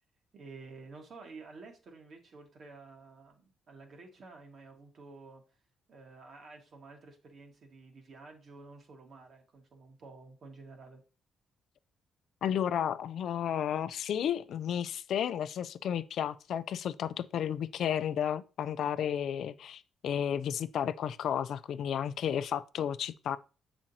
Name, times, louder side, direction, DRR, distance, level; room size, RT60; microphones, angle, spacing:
voice 1, 0.3-5.4 5.9-11.0, right 3 dB, 55° right, 1.6 m, -51 dB
voice 2, 12.4-23.4, left 9 dB, 70° left, 0.4 m, -32 dB
7.4 x 4.9 x 2.8 m
cardioid pair, 90°, 0 cm